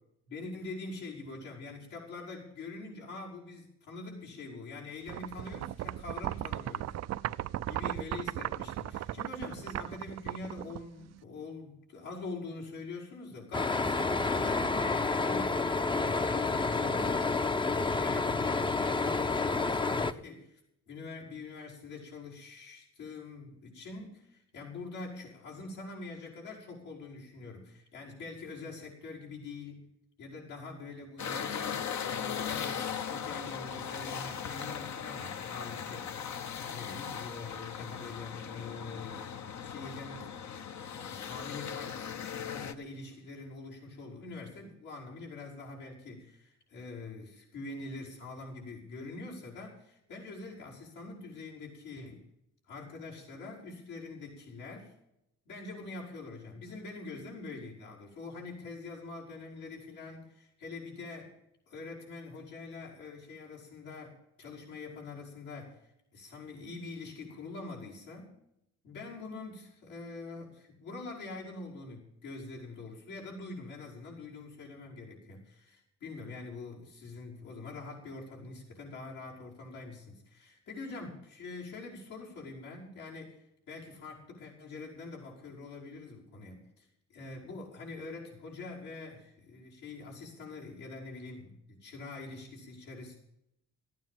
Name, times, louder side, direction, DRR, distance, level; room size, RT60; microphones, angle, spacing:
voice 1, 0.3-15.8 16.1-20.6 20.9-29.9 30.2-40.3 40.9-52.3 52.7-54.9 55.5-61.3 61.7-65.8 66.1-68.3 68.8-93.2, left 3 dB, 85° left, -3 dB, 5.6 m, -44 dB
sound 1, 5.1-11.2, right 13 dB, 60° right, 0.4 m, -37 dB
sound 2, 13.5-20.1, left 3 dB, 15° left, 0.6 m, -29 dB
sound 3, 31.2-42.7, left 7 dB, 65° left, 1.1 m, -38 dB
14.5 x 9.5 x 7.4 m, 0.80 s
cardioid pair, 90°, 30 cm